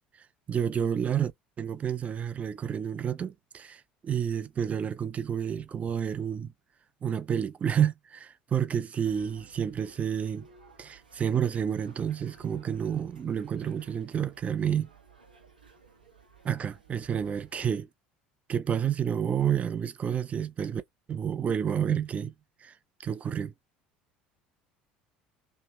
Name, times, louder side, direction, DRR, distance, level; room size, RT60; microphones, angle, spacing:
voice 1, 0.5-1.3 1.6-6.5 7.0-10.5 10.8-14.9 16.4-17.9 18.5-20.8 21.1-22.3 22.6-22.7 23.0-23.5, right 8 dB, 30° right, 0.5 m, -29 dB
sound 1, 9.1-17.6, right 5 dB, 85° right, 0.9 m, -56 dB
3.2 x 2.8 x 3.2 m
figure-of-eight pair, 65°, 5 cm